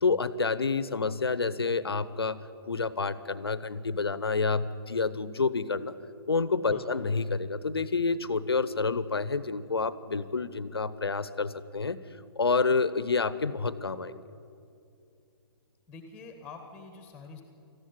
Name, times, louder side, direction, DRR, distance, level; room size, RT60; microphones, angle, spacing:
voice 1, 0.0-6.0 6.3-12.0 12.4-14.2, left 4 dB, 75° left, 16 dB, 0.9 m, -28 dB
voice 2, 15.9-17.4, left 4 dB, 10° left, 5 dB, 1.6 m, -46 dB
19.0 x 14.0 x 9.9 m, 2.6 s
figure-of-eight pair, 125°, 13 cm